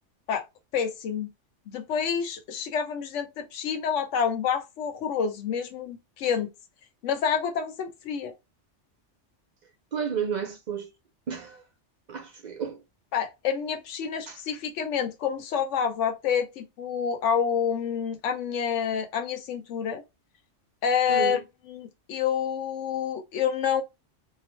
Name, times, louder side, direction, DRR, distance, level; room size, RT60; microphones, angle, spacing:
voice 1, 0.7-1.3 1.7-6.5 7.0-8.3 13.1-20.0 20.8-21.4 21.7-23.8, left 7 dB, 80° left, 1.0 m, -28 dB
voice 2, 9.9-10.9 11.3-11.6 12.1-12.8 14.3-14.4 21.1-21.4, right 7 dB, 60° right, 0.5 m, -32 dB
2.4 x 2.0 x 2.9 m
omnidirectional pair, 1.2 m